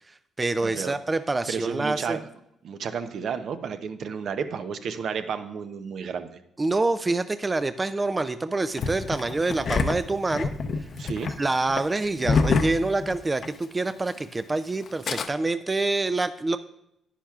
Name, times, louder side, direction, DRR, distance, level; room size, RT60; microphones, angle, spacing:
voice 1, 0.1-2.2 6.6-10.5 11.4-16.6, right 2 dB, 20° right, 11 dB, 0.3 m, -26 dB
voice 2, 0.6-0.9 1.5-2.2 2.6-6.4 11.0-11.3, right 6 dB, 65° right, 9 dB, 0.6 m, -32 dB
Engine starting, 8.8-13.6 13.9-14.0 14.8-15.3, left 4 dB, 55° left, 0.6 m, -27 dB
10.5 x 10.0 x 2.4 m, 0.79 s
cardioid pair, 90°, 0 cm